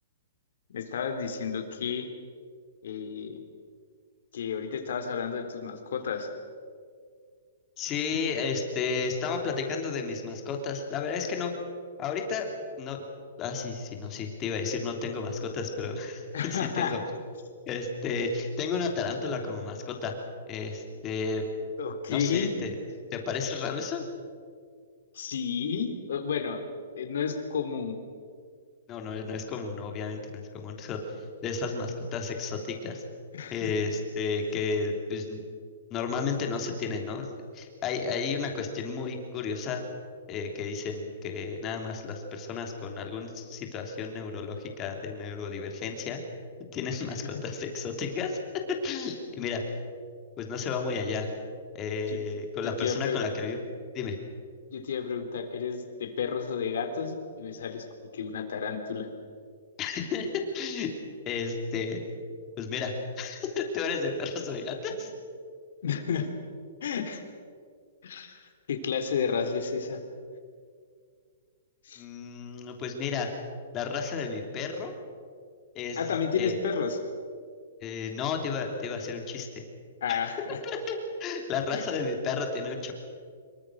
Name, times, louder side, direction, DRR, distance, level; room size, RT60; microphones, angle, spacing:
voice 1, 0.7-2.1 2.8-3.4 4.3-6.3 16.3-17.0 21.8-22.5 25.1-26.6 27.0-28.0 33.3-33.7 47.2-47.4 52.1-52.2 52.6-53.2 54.7-57.9 58.1-59.1 64.9-65.0 65.8-66.3 66.8-67.2 68.0-70.0 71.8-72.0 76.0-77.0 80.0-80.6 81.7-81.8, left 6 dB, 70° left, 6 dB, 3.7 m, -31 dB
voice 2, 7.8-11.5 12.0-12.5 12.8-13.0 13.4-17.0 17.7-20.1 20.5-21.4 22.1-22.7 23.1-24.0 28.9-31.0 31.4-33.0 33.5-35.4 35.9-37.3 37.5-39.8 40.3-46.2 46.7-48.4 48.8-49.6 50.4-51.3 51.7-53.6 53.9-54.2 59.8-60.9 61.3-62.0 62.6-65.1 72.0-73.3 73.7-74.9 75.7-76.0 76.4-76.6 77.8-79.7 80.1-80.2 80.5-82.9, left 5 dB, 20° left, 3 dB, 3.2 m, -32 dB
25.5 x 23.0 x 6.5 m, 2.1 s
hypercardioid pair, 165°, 0 cm